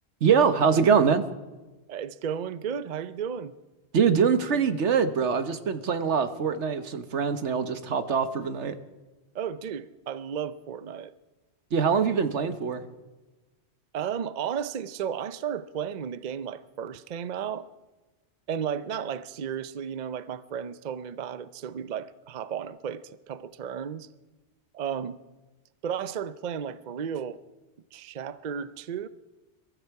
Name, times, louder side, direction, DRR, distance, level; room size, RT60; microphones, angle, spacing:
voice 1, 0.2-1.2 3.9-8.8 11.7-12.8, right 6 dB, 80° right, 1.4 m, -23 dB
voice 2, 1.9-3.5 9.3-11.1 13.9-17.7 18.5-24.1 24.7-25.2 25.8-27.4 27.9-29.1, right 8 dB, 45° right, 0.6 m, -33 dB
22.5 x 13.5 x 4.7 m
omnidirectional pair, 1.2 m